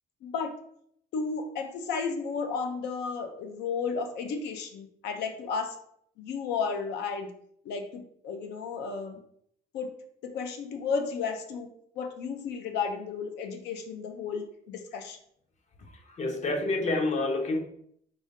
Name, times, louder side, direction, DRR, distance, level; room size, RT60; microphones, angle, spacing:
voice 1, 0.2-0.5 1.1-5.7 6.2-7.3 7.6-9.2 9.7-9.9 10.2-11.7 12.0-15.2, left 5 dB, 80° left, 5 dB, 0.7 m, -33 dB
voice 2, 15.8-17.6, left 2 dB, 45° left, 4 dB, 0.8 m, -29 dB
4.3 x 2.6 x 3.6 m, 0.68 s
cardioid pair, 110°, 17 cm